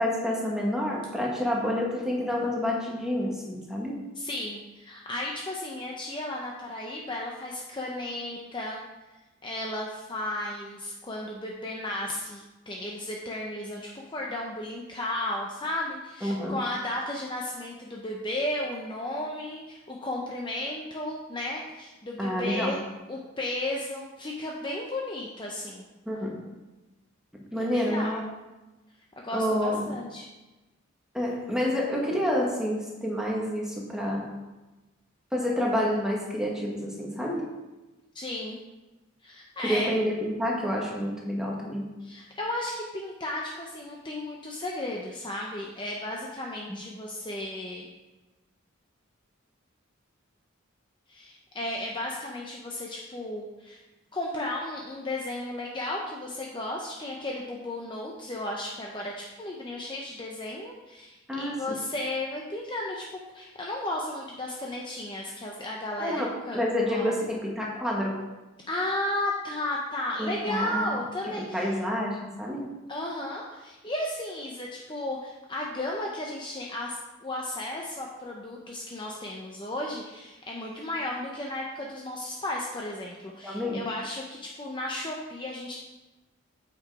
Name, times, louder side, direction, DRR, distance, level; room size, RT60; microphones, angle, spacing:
voice 1, 0.0-4.0 16.2-16.6 22.2-22.8 26.1-26.4 27.5-28.3 29.3-30.0 31.1-34.3 35.3-37.4 39.6-41.9 61.3-61.8 66.0-68.2 70.2-71.0 71.3-72.7 83.4-83.8, equal, 5° right, -3 dB, 1.6 m, -28 dB
voice 2, 4.2-8.8 9.4-22.8 23.1-25.8 27.6-28.2 29.2-30.3 38.1-38.6 39.2-39.9 42.0-47.9 51.1-53.8 54.1-63.0 63.3-66.6 66.9-67.1 68.7-71.7 72.9-85.7, left 1 dB, 25° left, -2 dB, 0.8 m, -34 dB
8.5 x 6.1 x 4.8 m, 1.1 s
head